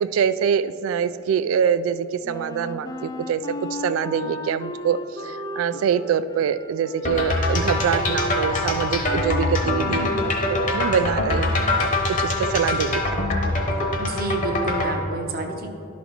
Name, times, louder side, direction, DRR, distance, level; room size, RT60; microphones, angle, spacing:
voice 1, 0.0-3.4 3.7-5.0 5.2-11.9 12.2-13.3, right 7 dB, 85° right, 15 dB, 0.3 m, -24 dB
Wind instrument woodwind instrument, 2.2-11.1, left 1 dB, 20° left, 0.3 m, -35 dB
sound 1, 7.0-14.9, left 2 dB, 40° left, 0.9 m, -24 dB
voice 2, 9.8-10.2 14.0-15.7, right 2 dB, 45° right, 3 dB, 0.8 m, -29 dB
11.5 x 4.2 x 4.3 m, 2.6 s
head